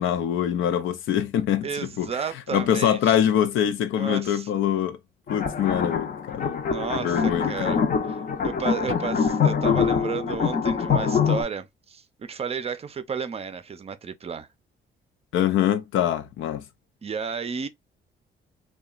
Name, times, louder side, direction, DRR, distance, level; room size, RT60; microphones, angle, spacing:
voice 1, 0.0-2.1 2.5-5.0 5.3-6.6 7.0-8.0 15.3-16.7, left 10 dB, 80° left, 0.5 m, -24 dB
voice 2, 1.6-3.2 3.9-4.5 6.7-7.8 8.1-14.5 17.0-17.7, right 6 dB, 30° right, 0.5 m, -32 dB
sound 1, 5.3-11.4, left 6 dB, 45° left, 0.7 m, -24 dB
2.8 x 2.2 x 2.3 m
cardioid pair, 90°, 20 cm